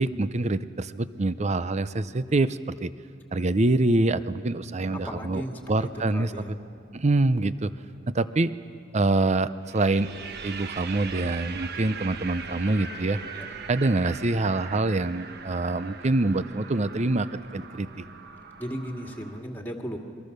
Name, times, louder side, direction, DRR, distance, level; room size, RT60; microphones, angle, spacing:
voice 1, 0.0-2.9 3.3-5.4 5.7-6.3 6.9-7.7 8.1-8.5 8.9-10.1 10.4-13.2 13.7-17.3 17.5-18.0, right 2 dB, 35° right, 14 dB, 0.6 m, -25 dB
sound 1, 4.8-7.6 9.6-19.4, right 5 dB, 55° right, 1.2 m, -41 dB
voice 2, 5.0-6.5 13.3-13.5 18.6-20.0, equal, 10° left, 1 dB, 2.2 m, -36 dB
28.0 x 23.5 x 6.7 m, 2.3 s
head